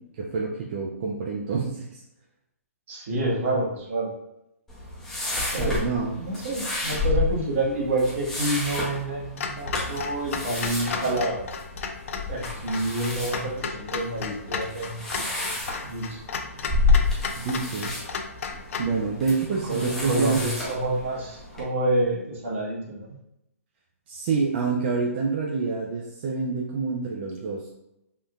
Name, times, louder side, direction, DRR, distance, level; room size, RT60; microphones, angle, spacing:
voice 1, 0.0-2.0 5.6-6.1 17.4-17.9 18.8-20.5 24.1-27.7, right 4 dB, 40° right, -2 dB, 0.4 m, -27 dB
voice 2, 2.9-4.1 5.5-5.9 6.2-11.4 12.3-16.2 19.7-23.2, right 1 dB, 55° right, -3 dB, 1.2 m, -28 dB
sound 1, 4.7-21.6, left 3 dB, 5° left, 0.7 m, -30 dB
Clock, 9.4-18.9, left 5 dB, 60° left, 0.3 m, -34 dB
3.5 x 2.6 x 2.3 m, 0.85 s
hypercardioid pair, 150°, 8 cm